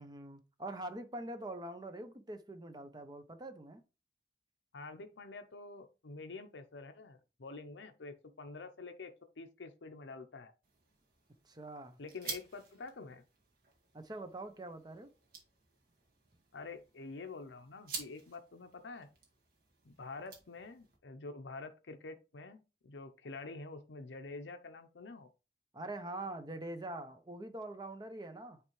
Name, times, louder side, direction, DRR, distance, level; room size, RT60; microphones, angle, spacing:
voice 1, 0.0-3.8 11.4-12.0 13.9-15.1 25.7-28.6, right 2 dB, 25° right, 0.6 m, -44 dB
voice 2, 4.7-10.5 12.0-13.2 16.5-19.1 19.8-25.3, left 3 dB, 90° left, 0.7 m, -47 dB
sound 1, 10.6-21.0, right 4 dB, 50° right, 1.8 m, -51 dB
9.1 x 3.3 x 3.1 m
head